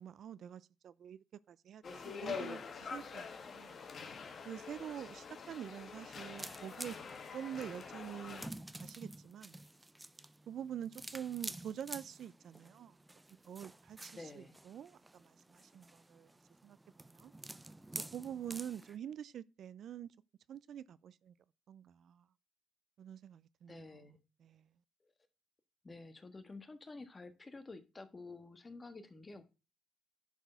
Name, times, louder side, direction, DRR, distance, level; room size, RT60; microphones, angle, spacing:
voice 1, 0.0-3.8 4.4-7.0 7.3-8.5 8.8-9.6 10.5-13.0 13.4-16.3 16.6-16.8 17.1-17.3 18.1-20.1 20.5-21.3 21.7-22.3 23.0-23.8 24.4-24.7, right 9 dB, 65° right, 0.4 m, -46 dB
sound 1, 1.8-8.5, left 5 dB, 50° left, 1.7 m, -45 dB
sound 2, 6.4-19.0, right 2 dB, 10° right, 0.5 m, -50 dB
voice 2, 14.1-14.6 23.7-24.2 25.0-25.1 25.8-29.4, left 3 dB, 25° left, 1.4 m, -50 dB
10.5 x 4.5 x 5.6 m
cardioid pair, 90°, 0 cm